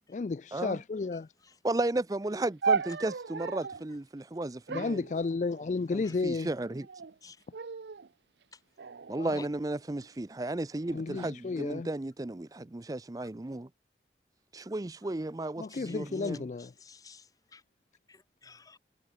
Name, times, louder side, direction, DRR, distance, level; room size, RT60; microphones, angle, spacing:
voice 1, 0.1-1.3 4.7-6.5 9.2-9.4 10.9-11.9 15.6-16.7, left 4 dB, 40° left, 0.3 m, -32 dB
voice 2, 1.6-5.0 5.9-6.9 9.1-13.7 14.5-16.5, right 2 dB, 20° right, 0.4 m, -34 dB
sound 1, 2.6-3.9 4.7-5.9 6.7-7.2 7.5-8.1 8.8-10.1 10.8-11.3, right 5 dB, 75° right, 0.6 m, -35 dB
voice 3, 16.8-17.3 17.5-17.6 18.1-18.8, left 3 dB, 20° left, 0.8 m, -50 dB
head